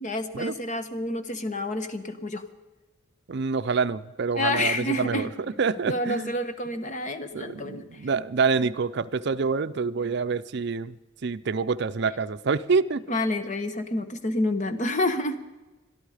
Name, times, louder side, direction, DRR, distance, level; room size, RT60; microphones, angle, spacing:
voice 1, 0.0-2.4 4.3-5.3 5.9-8.1 13.1-15.4, left 1 dB, 35° left, 9 dB, 1.0 m, -28 dB
voice 2, 3.3-5.3 5.6-6.3 7.3-11.0 11.2-13.0, right 5 dB, 55° right, 12 dB, 0.5 m, -26 dB
22.5 x 12.5 x 5.0 m, 1.1 s
head